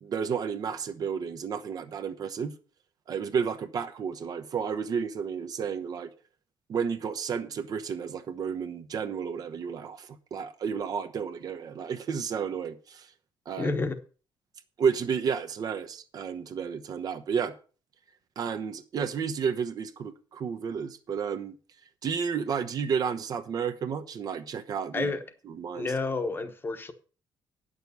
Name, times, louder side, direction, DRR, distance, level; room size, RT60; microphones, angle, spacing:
voice 1, 0.0-2.5 3.1-6.1 6.7-13.1 13.5-13.7 14.8-17.5 18.4-21.5 22.0-25.1 25.5-25.9, right 6 dB, 50° right, 1.1 m, -31 dB
voice 2, 13.6-14.0 24.9-25.2 25.7-26.9, left 3 dB, 25° left, 1.1 m, -30 dB
9.5 x 6.8 x 6.8 m
cardioid pair, 150°, 9 cm